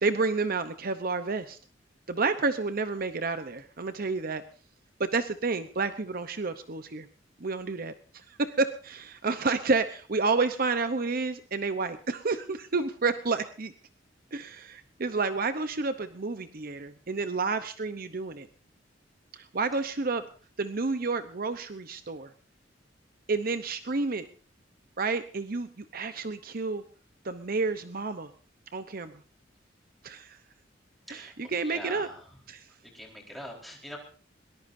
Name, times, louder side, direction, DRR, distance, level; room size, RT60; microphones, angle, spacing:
voice 1, 0.0-1.6 2.1-4.4 5.0-7.1 7.4-13.7 14.3-18.5 19.3-20.2 20.6-22.3 23.3-24.3 25.0-26.8 27.2-28.3 28.7-29.2 30.0-30.4 31.1-32.1 32.5-32.6, right 4 dB, 50° right, 10 dB, 0.9 m, -30 dB
voice 2, 31.1-32.3 32.9-34.0, equal, ahead, -1 dB, 4.5 m, -43 dB
21.5 x 19.5 x 2.7 m, 0.39 s
head